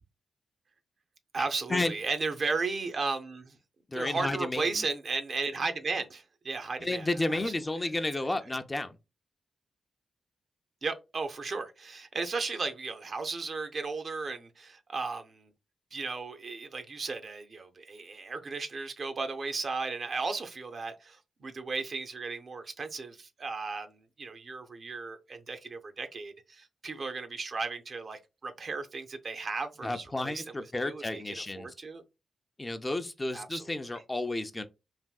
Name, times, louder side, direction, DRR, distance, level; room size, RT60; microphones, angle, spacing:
voice 1, 1.3-3.6 3.9-7.4 10.8-15.5 15.9-30.4 30.8-32.0 33.3-33.8, right 4 dB, 60° right, 0.5 m, -35 dB
voice 2, 3.9-4.8 6.8-9.0 29.8-31.7 32.6-34.7, left 2 dB, 25° left, 0.5 m, -32 dB
3.4 x 2.6 x 2.3 m
supercardioid pair, 50°, 0 cm